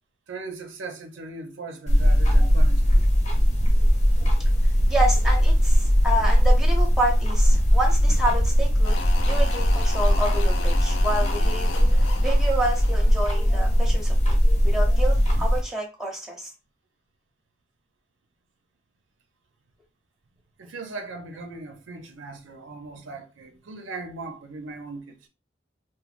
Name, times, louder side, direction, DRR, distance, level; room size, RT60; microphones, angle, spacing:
voice 1, 0.3-3.0 20.6-25.3, right 3 dB, 80° right, 0.5 m, -38 dB
sound 1, 1.9-15.6, equal, 35° left, 0.7 m, -19 dB
voice 2, 4.9-8.9 9.2-14.3 14.6-16.5, right 1 dB, ahead, 0.6 m, -29 dB
sound 2, 8.8-14.0 14.3-14.4, left 3 dB, 70° left, 0.5 m, -36 dB
3.1 x 2.1 x 2.5 m
head